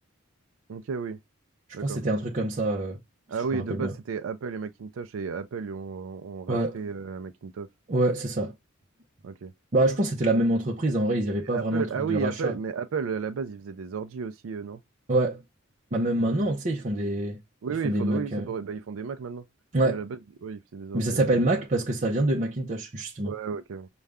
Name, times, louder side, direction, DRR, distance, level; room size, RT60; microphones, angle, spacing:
voice 1, 0.7-1.2 1.7-2.0 3.3-7.7 9.2-9.5 11.4-14.8 16.2-16.5 17.6-19.4 19.8-21.5 23.2-23.9, right 6 dB, 80° right, 0.4 m, -33 dB
voice 2, 1.8-3.0 3.5-3.9 6.5-6.8 7.9-8.5 9.7-12.5 15.1-15.4 15.9-17.4 17.8-18.5 19.7-20.0 20.9-23.3, right 1 dB, 40° right, 0.6 m, -25 dB
6.4 x 2.3 x 3.4 m
head